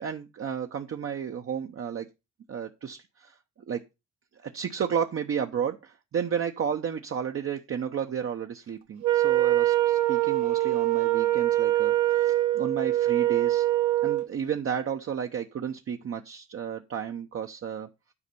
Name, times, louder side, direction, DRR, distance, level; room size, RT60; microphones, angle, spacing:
voice 1, 0.0-2.1 2.5-3.4 3.7-3.8 4.4-13.7 14.0-17.9, right 7 dB, 45° right, 4 dB, 0.9 m, -32 dB
Wind instrument woodwind instrument, 9.0-14.3, right 14 dB, 70° right, 1.3 m, -24 dB
9.9 x 4.2 x 6.8 m, 0.26 s
cardioid pair, 90°, 30 cm